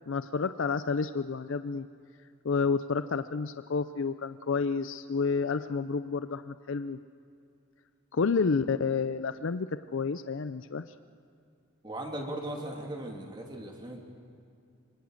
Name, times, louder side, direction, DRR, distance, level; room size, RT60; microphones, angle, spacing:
voice 1, 0.1-1.9 2.4-7.0 8.1-10.8, left 5 dB, 60° left, 12 dB, 0.5 m, -30 dB
voice 2, 11.8-14.0, right 1 dB, 20° right, 0 dB, 2.8 m, -38 dB
25.5 x 24.0 x 6.5 m, 2.4 s
head